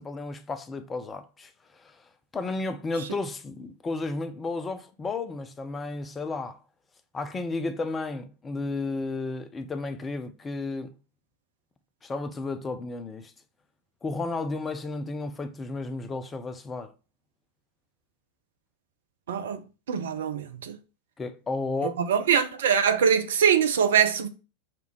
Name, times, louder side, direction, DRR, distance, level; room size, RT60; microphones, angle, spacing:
voice 1, 0.0-6.6 7.1-10.9 12.0-13.3 14.0-16.9 21.2-22.0, left 3 dB, 15° left, 0.7 m, -33 dB
voice 2, 19.3-19.6 19.9-20.8 22.0-24.3, right 8 dB, 60° right, 0.8 m, -23 dB
6.0 x 3.5 x 4.6 m
figure-of-eight pair, 90°, 0 cm